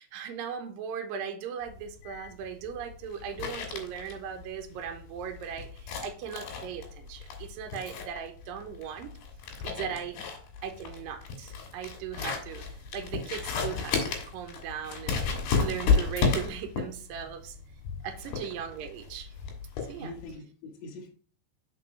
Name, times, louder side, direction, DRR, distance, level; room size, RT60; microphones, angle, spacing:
voice 1, 0.0-9.1 9.6-10.2 10.6-12.6 12.9-15.2 15.6-17.6 18.0-19.3 19.9-20.1, right 8 dB, 80° right, 2.2 m, -38 dB
sound 1, 1.7-20.3, left 5 dB, 80° left, 3.4 m, -33 dB
voice 2, 19.9-21.1, left 2 dB, 65° left, 1.8 m, -44 dB
6.0 x 4.5 x 4.8 m
omnidirectional pair, 4.4 m